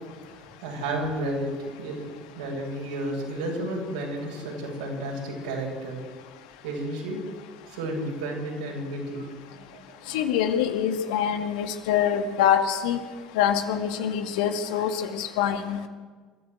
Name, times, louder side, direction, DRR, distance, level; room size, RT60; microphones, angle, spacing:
voice 1, 0.4-6.0 6.6-7.2 7.7-10.3, right 1 dB, 70° right, -1 dB, 7.7 m, -32 dB
voice 2, 10.1-13.0 13.3-15.9, left 9 dB, 65° left, 7 dB, 2.0 m, -25 dB
27.5 x 15.0 x 8.1 m, 1.5 s
figure-of-eight pair, 60°, 4 cm